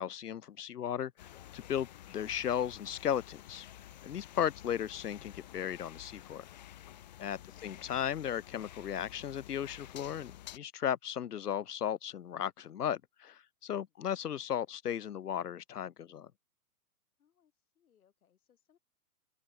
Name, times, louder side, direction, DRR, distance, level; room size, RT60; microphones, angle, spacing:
voice 1, 0.0-3.7 4.0-6.4 7.2-16.3, left 9 dB, 85° left, 0.8 m, -36 dB
sound 1, 1.2-10.6, left 12 dB, 30° left, 0.4 m, -51 dB
voice 2, 13.7-14.1 17.2-18.8, left 9 dB, 65° left, 6.7 m, -73 dB
open air
hypercardioid pair, 130°, 46 cm